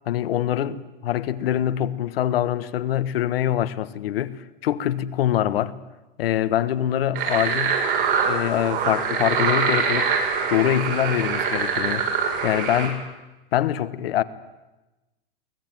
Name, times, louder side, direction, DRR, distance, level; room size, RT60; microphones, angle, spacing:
voice 1, 0.1-5.8 6.2-7.8 8.2-10.1 10.5-13.1 13.5-14.2, left 11 dB, 75° left, 1.4 m, -24 dB
sound 1, 7.2-12.9, right 6 dB, 65° right, 7.9 m, -24 dB
23.5 x 18.0 x 9.2 m
supercardioid pair, 145°, 30 cm